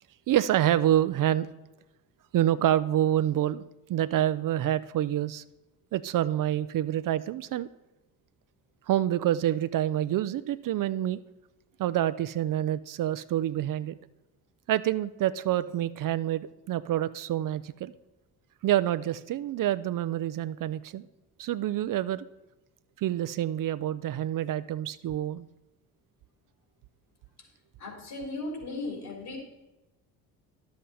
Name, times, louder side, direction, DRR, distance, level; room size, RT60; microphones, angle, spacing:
voice 1, 0.3-1.5 2.3-3.6 3.9-5.4 5.9-7.7 8.9-11.2 11.8-14.0 14.7-17.9 18.6-21.1 21.4-22.2 23.0-25.5, right 12 dB, 50° right, 14 dB, 0.4 m, -27 dB
voice 2, 27.8-29.4, left 2 dB, 55° left, 2 dB, 3.5 m, -36 dB
11.0 x 7.7 x 4.1 m, 1.0 s
hypercardioid pair, 60°, 44 cm